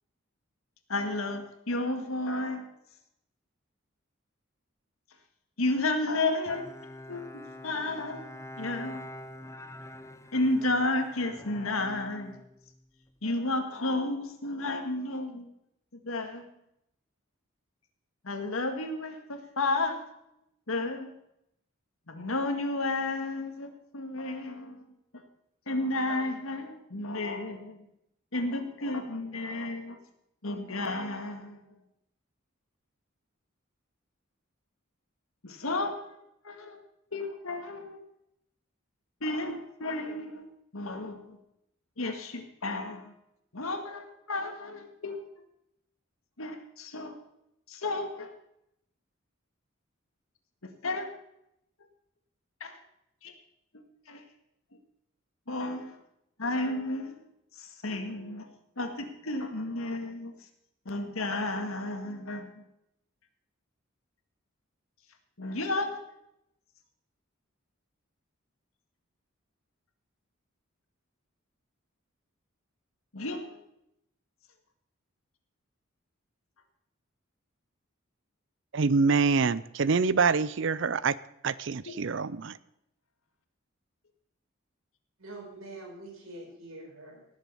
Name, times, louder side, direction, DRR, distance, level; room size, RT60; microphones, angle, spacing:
voice 1, 0.9-2.7 5.6-9.0 10.3-12.4 13.2-15.5 16.0-16.5 18.2-20.1 20.7-21.1 22.1-24.9 25.1-25.2 25.7-27.9 28.3-30.0 30.4-31.8 35.4-36.2 36.4-36.8 37.1-38.0 39.2-41.4 42.0-43.2 43.5-45.3 46.4-47.2 47.7-48.3 50.6-51.1 52.6-52.8 53.2-53.3 53.7-54.2 55.5-56.0 56.4-57.3 57.5-58.5 58.8-60.3 60.9-62.6 65.4-66.0 73.1-73.6 81.9-82.0, left 2 dB, 85° left, 6 dB, 1.8 m, -32 dB
Bowed string instrument, 6.5-13.1, left 1 dB, 15° left, 0.6 m, -46 dB
voice 2, 78.7-81.1 81.4-82.6, right 4 dB, 60° right, 18 dB, 0.5 m, -25 dB
voice 3, 85.2-87.3, right 2 dB, 85° right, 0 dB, 5.0 m, -45 dB
18.0 x 7.5 x 5.5 m, 0.79 s
head